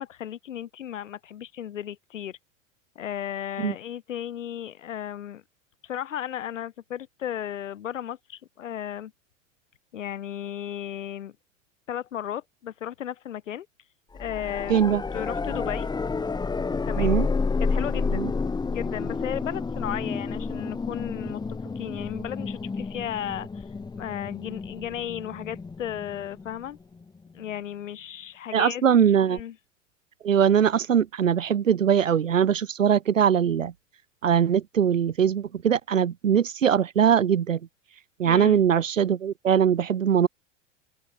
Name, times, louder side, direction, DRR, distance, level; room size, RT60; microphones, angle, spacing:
voice 1, 0.0-2.4 3.0-5.4 5.8-9.1 9.9-11.3 11.9-13.7 14.2-15.9 16.9-17.2 17.6-18.3 18.7-21.4 21.8-23.6 24.0-26.8 27.3-28.8 29.3-29.6 38.3-38.6, left 10 dB, 75° left, 5.5 m, -35 dB
sound 1, 14.2-27.0 29.4-29.5, left 4 dB, 10° left, 1.2 m, -30 dB
voice 2, 14.7-15.0 17.0-17.3 18.1-18.3 28.5-29.4 30.2-33.7 34.2-37.6 38.2-40.3, right 8 dB, 85° right, 3.0 m, -21 dB
open air
hypercardioid pair, 95°, 38 cm